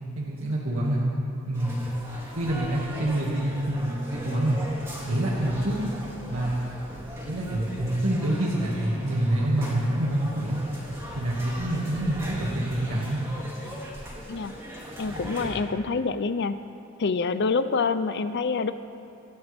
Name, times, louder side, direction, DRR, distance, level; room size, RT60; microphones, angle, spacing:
voice 1, 0.2-1.1 1.5-1.8 2.4-4.6 5.1-5.9 6.2-6.5 7.3-10.6 11.2-13.2, right 1 dB, 65° right, -5 dB, 2.2 m, -26 dB
sound 1, 1.5-15.6, equal, 15° right, 3.8 m, -39 dB
voice 2, 15.0-16.6 17.0-18.7, left 4 dB, 50° left, 11 dB, 0.5 m, -26 dB
26.5 x 14.0 x 3.6 m, 2.6 s
head